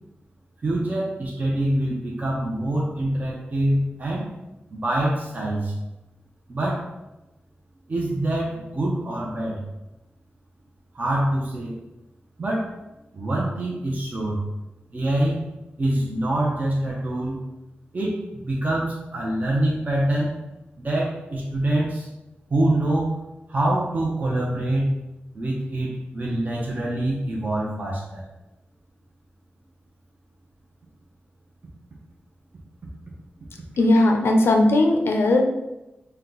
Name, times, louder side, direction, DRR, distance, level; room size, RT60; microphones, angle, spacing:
voice 1, 0.6-4.3 4.7-5.7 6.5-6.9 7.9-9.6 10.9-11.8 12.4-12.7 13.1-14.4 14.9-15.4 15.8-17.4 17.9-20.4 20.8-22.1 22.5-23.2 23.5-25.0 25.3-28.2, right 1 dB, 45° right, -4 dB, 0.7 m, -25 dB
voice 2, 33.8-35.4, left 2 dB, 85° left, 2 dB, 0.5 m, -18 dB
4.4 x 2.3 x 3.9 m, 0.97 s
wide cardioid pair, 115°, 4 cm